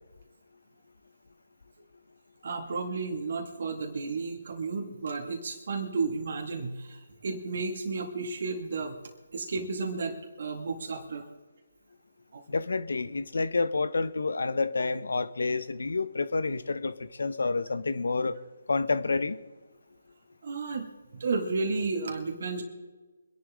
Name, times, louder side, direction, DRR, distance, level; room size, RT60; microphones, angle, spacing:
voice 1, 2.4-9.0 9.3-11.3 12.3-12.4 20.4-22.6, right 4 dB, 55° right, 2 dB, 2.3 m, -33 dB
voice 2, 12.5-18.4 18.7-19.4, left 3 dB, 75° left, 14 dB, 1.1 m, -29 dB
25.5 x 11.0 x 3.7 m, 1.3 s
figure-of-eight pair, 155°, 0 cm